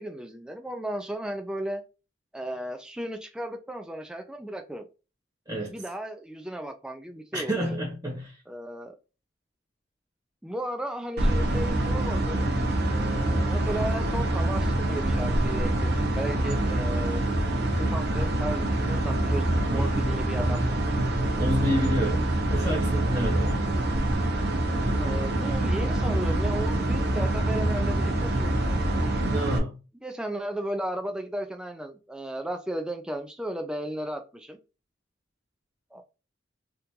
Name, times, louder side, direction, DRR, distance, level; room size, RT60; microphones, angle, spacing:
voice 1, 0.0-1.8 2.3-4.9 5.7-7.6 8.5-8.9 10.4-12.5 12.9-17.2 17.8-20.8 25.0-28.8 30.0-34.6 35.9-36.0, right 1 dB, 5° right, 0.4 m, -35 dB
voice 2, 7.3-8.4 19.7-20.1 21.4-22.2 22.5-23.6 29.3-29.8, equal, 20° right, 1.0 m, -29 dB
sound 1, 11.2-29.6, right 1 dB, 55° right, 0.7 m, -25 dB
3.6 x 2.5 x 2.8 m
head